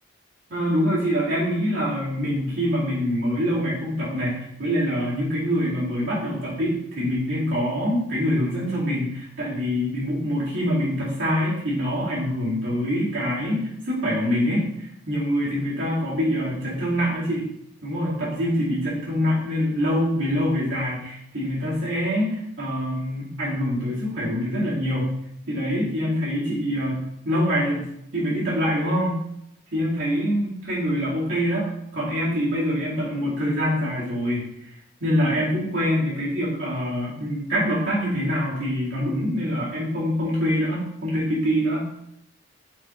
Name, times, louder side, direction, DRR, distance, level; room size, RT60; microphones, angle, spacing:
voice 1, 0.5-17.5 17.8-25.1 25.5-27.0 27.2-29.2 29.7-34.5 35.0-41.9, equal, 70° right, -9 dB, 2.3 m, -25 dB
6.1 x 3.6 x 4.3 m, 0.79 s
head